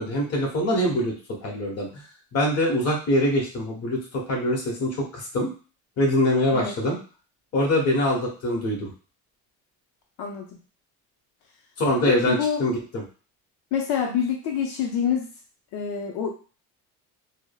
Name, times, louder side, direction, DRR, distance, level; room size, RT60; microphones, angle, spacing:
voice 1, 0.0-1.9 2.3-5.5 6.0-7.0 7.5-8.9 11.8-13.0, left 1 dB, 40° left, -1 dB, 1.0 m, -24 dB
voice 2, 12.3-12.6 13.7-15.3 15.7-16.3, left 7 dB, 75° left, 1 dB, 0.6 m, -26 dB
3.3 x 2.0 x 2.2 m, 0.36 s
cardioid pair, 155°, 39 cm